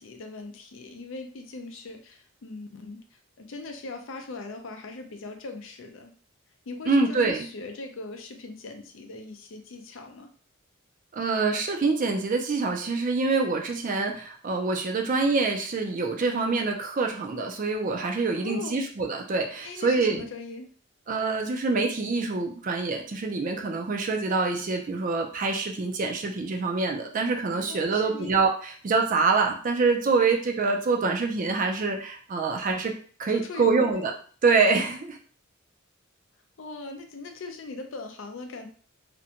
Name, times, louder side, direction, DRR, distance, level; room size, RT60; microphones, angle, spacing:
voice 1, 0.0-3.0 3.4-6.1 6.7-10.3 18.3-18.8 19.6-20.7 27.5-28.3 33.4-33.9 36.6-38.7, left 3 dB, 65° left, 5 dB, 0.5 m, -40 dB
voice 2, 6.9-7.5 11.1-20.3 21.1-32.9 33.2-34.1 34.4-35.2, right 4 dB, 40° right, 3 dB, 0.4 m, -25 dB
2.5 x 2.2 x 2.7 m, 0.43 s
head